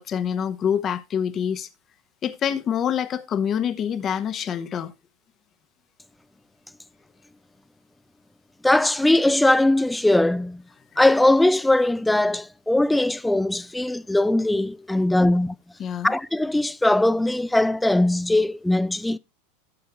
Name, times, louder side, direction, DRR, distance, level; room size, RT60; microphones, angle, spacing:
voice 1, 0.0-1.7 2.2-4.9 15.8-16.1, left 8 dB, 35° left, 0.9 m, -26 dB
voice 2, 8.6-10.6 11.0-15.6 16.0-19.2, left 1 dB, 5° left, 0.4 m, -20 dB
12.0 x 7.0 x 3.1 m
hypercardioid pair, 95°, 0 cm